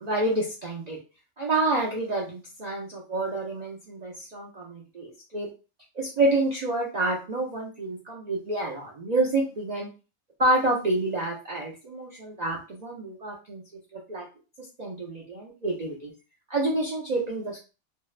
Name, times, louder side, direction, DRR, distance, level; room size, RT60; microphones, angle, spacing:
voice 1, 0.0-1.0 1.4-5.5 6.0-9.9 10.4-13.6 13.9-14.3 14.8-16.1 16.5-17.6, right 2 dB, 65° right, -3 dB, 0.4 m, -28 dB
2.6 x 2.1 x 2.3 m, 0.32 s
omnidirectional pair, 1.4 m